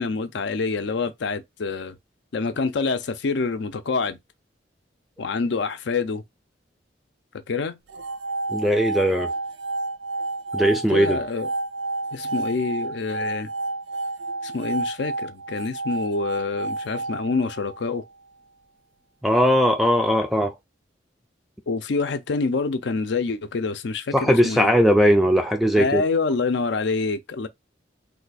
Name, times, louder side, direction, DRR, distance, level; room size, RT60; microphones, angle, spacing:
voice 1, 0.0-2.0 2.3-4.2 5.2-6.2 7.5-7.8 10.7-11.5 12.1-13.5 14.4-18.0 21.7-24.7 25.8-27.5, left 4 dB, 65° left, 0.5 m, -26 dB
sound 1, 7.9-18.0, right 2 dB, 75° right, 0.4 m, -30 dB
voice 2, 8.5-9.3 10.5-11.2 19.2-20.6 24.1-26.0, equal, ahead, 0.3 m, -19 dB
2.7 x 2.3 x 4.1 m
head